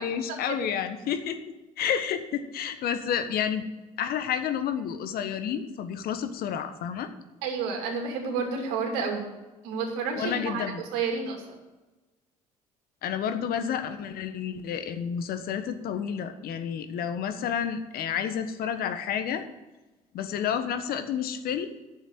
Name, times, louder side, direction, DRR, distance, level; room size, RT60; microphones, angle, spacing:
voice 1, 0.0-1.4 1.8-3.6 4.0-7.1 10.2-10.8 13.0-19.4 20.1-21.7, left 8 dB, 55° left, 9 dB, 1.3 m, -30 dB
voice 2, 7.4-9.3 9.6-11.6, right 5 dB, 70° right, 2 dB, 2.6 m, -30 dB
9.7 x 7.1 x 8.1 m, 1.1 s
hypercardioid pair, 60°, 18 cm